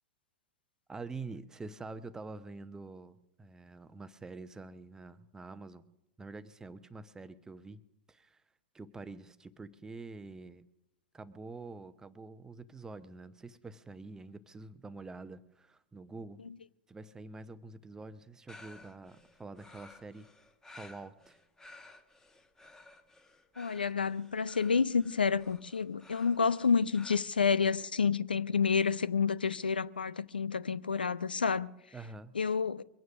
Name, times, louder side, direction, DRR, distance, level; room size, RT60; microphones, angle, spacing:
voice 1, 0.9-5.8 6.2-7.8 8.1-8.4 8.7-10.6 11.1-16.4 16.9-20.3 20.6-21.4 31.9-32.3, right 3 dB, 10° right, 0.8 m, -46 dB
sound 1, 18.5-27.2, left 2 dB, 10° left, 1.3 m, -55 dB
voice 2, 23.6-31.7 32.3-32.8, left 5 dB, 75° left, 0.5 m, -29 dB
23.0 x 9.4 x 6.2 m
figure-of-eight pair, 90°, 5 cm